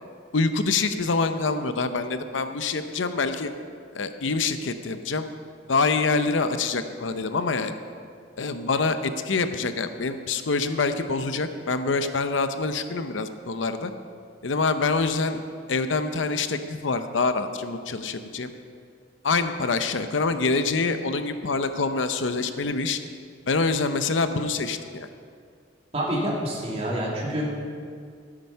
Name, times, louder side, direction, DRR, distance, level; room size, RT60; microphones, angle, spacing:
voice 1, 0.3-3.5 3.9-5.3 5.7-7.7 8.4-13.9 14.4-15.4 15.7-18.5 19.2-23.0 23.5-25.1, left 4 dB, 80° left, 9 dB, 0.7 m, -25 dB
voice 2, 25.9-27.5, equal, 35° right, -4 dB, 2.6 m, -27 dB
13.0 x 8.8 x 5.6 m, 2.2 s
head